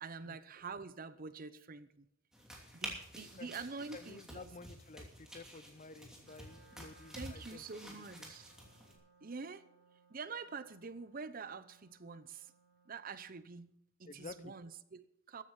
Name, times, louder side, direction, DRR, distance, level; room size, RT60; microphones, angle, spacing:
voice 1, 0.0-2.1 2.7-4.5 7.1-8.5 9.2-9.6 10.1-12.5 12.9-13.7 14.0-15.4, right 4 dB, 45° right, 14 dB, 0.7 m, -46 dB
sound 1, 2.3-9.0, equal, 5° right, 2.8 m, -50 dB
voice 2, 3.9-8.3 14.0-14.5, left 3 dB, 40° left, 15 dB, 0.6 m, -52 dB
Wind instrument woodwind instrument, 6.2-13.4, right 3 dB, 65° right, 2.8 m, -67 dB
14.0 x 9.8 x 5.6 m, 0.78 s
head